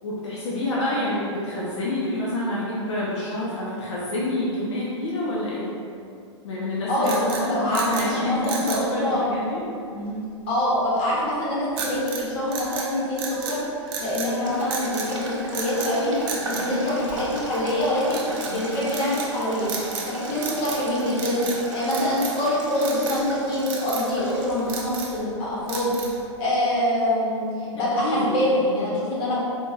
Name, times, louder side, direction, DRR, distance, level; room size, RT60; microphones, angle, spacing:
voice 1, 0.0-5.6 6.4-7.1 7.5-9.6 9.9-10.2 27.9-28.8, left 1 dB, 70° left, -6 dB, 0.7 m, -28 dB
voice 2, 6.9-9.2 10.5-19.7 20.0-25.9 26.4-29.4, left 1 dB, 35° left, -7 dB, 1.3 m, -25 dB
sound 1, 7.0-8.1 8.4-8.9 11.8-12.2 12.5-13.6 13.9-14.3 14.7-15.1 15.5-15.9 16.3-17.4 18.1-18.5 18.9-19.3 19.6-20.1 20.4-20.9 21.1-21.6 21.9-22.4 22.8-23.2 23.7-24.1 24.5-25.2 25.7-26.2, right 5 dB, 50° right, 0.7 m, -33 dB
Boiling, 14.4-24.8, right 1 dB, 90° right, 0.8 m, -35 dB
4.4 x 2.8 x 2.3 m, 2.6 s
hypercardioid pair, 120°, 16 cm